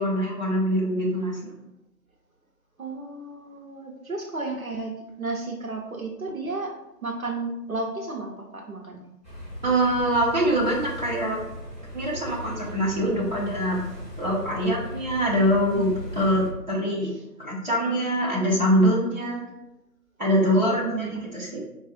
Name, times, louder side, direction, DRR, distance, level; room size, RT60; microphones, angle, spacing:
voice 1, 0.0-1.5 9.6-11.4 11.9-13.8 14.2-17.1 17.4-19.5 20.2-21.6, equal, 30° right, -7 dB, 0.8 m, -24 dB
voice 2, 2.8-6.7 7.0-9.0 20.6-21.2, right 3 dB, 60° right, 0 dB, 0.7 m, -33 dB
sound 1, 9.2-16.5, equal, 10° left, 1.5 m, -38 dB
4.2 x 2.3 x 4.1 m, 0.91 s
figure-of-eight pair, 170°, 49 cm